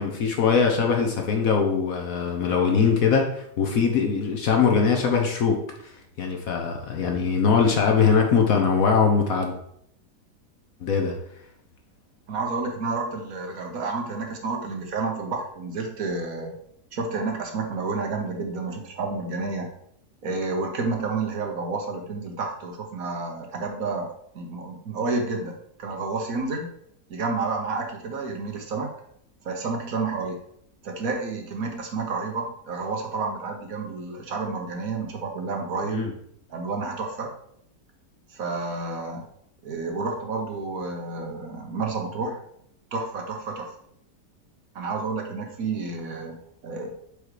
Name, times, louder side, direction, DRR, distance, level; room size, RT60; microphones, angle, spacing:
voice 1, 0.0-5.6 6.2-9.6 10.8-11.2 35.9-36.1, left 5 dB, 60° left, 2 dB, 1.2 m, -21 dB
voice 2, 12.3-16.5 16.9-19.7 20.2-25.5 25.8-26.7 27.1-28.9 29.4-30.4 30.8-36.1 36.5-37.3 38.3-39.2 39.6-42.4 42.9-43.7 44.7-46.9, right 3 dB, 60° right, 2 dB, 1.3 m, -30 dB
5.0 x 4.6 x 4.8 m, 0.71 s
omnidirectional pair, 1.8 m